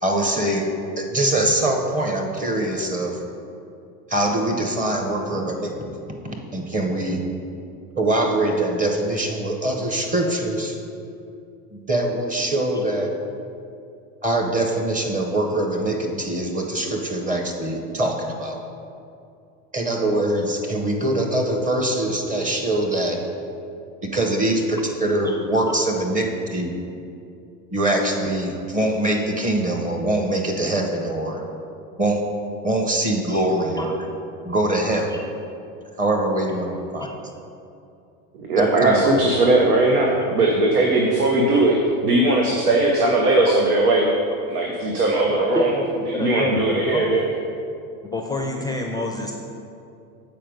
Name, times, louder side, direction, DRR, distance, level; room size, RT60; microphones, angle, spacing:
voice 1, 0.0-3.2 4.1-5.9 6.2-7.3 8.0-10.8 11.7-13.1 14.2-18.6 19.7-23.2 24.0-26.7 27.7-31.4 32.0-32.3 32.6-34.0 34.4-35.1 36.0-37.1 38.6-39.0, right 1 dB, 20° right, 2 dB, 0.8 m, -23 dB
voice 2, 38.4-41.8 42.0-44.1 44.5-45.7 46.1-47.2, right 2 dB, 90° right, 0 dB, 0.9 m, -19 dB
voice 3, 45.5-47.1 48.0-49.3, left 2 dB, 10° left, 1 dB, 0.4 m, -28 dB
7.6 x 4.3 x 5.2 m, 2.5 s
hypercardioid pair, 100°, 44 cm